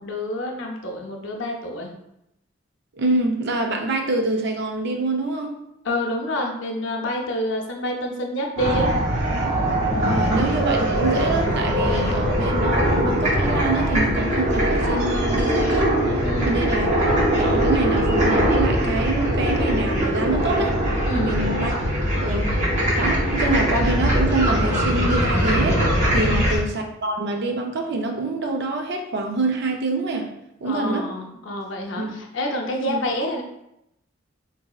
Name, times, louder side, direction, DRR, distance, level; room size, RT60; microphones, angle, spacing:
voice 1, 0.0-1.9 5.8-8.9 16.2-16.6 21.0-21.5 26.2-26.5 30.6-33.4, left 1 dB, 65° left, 1 dB, 0.5 m, -28 dB
voice 2, 2.9-5.6 10.0-15.9 16.4-16.9 17.4-20.7 21.1-21.7 22.2-30.3 30.6-31.1 32.0-32.1 32.9-33.0, right 2 dB, 55° right, 3 dB, 0.4 m, -26 dB
sound 1, 8.6-26.6, equal, 35° right, 0.8 m, -21 dB
4.0 x 2.6 x 2.3 m, 0.82 s
head